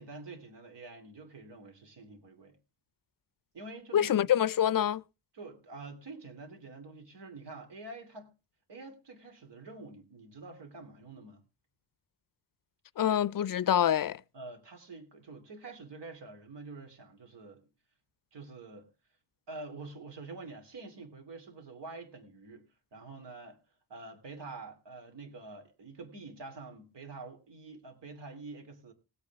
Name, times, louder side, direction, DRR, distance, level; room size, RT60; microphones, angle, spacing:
voice 1, 0.0-2.6 3.5-4.3 5.3-8.3 8.7-11.4 14.3-17.6 18.3-18.9 19.5-23.6 23.9-28.9, right 3 dB, 80° right, 2.8 m, -47 dB
voice 2, 3.9-5.0 13.0-14.2, left 10 dB, 55° left, 0.5 m, -26 dB
19.0 x 8.3 x 3.5 m
wide cardioid pair, 105°, 41 cm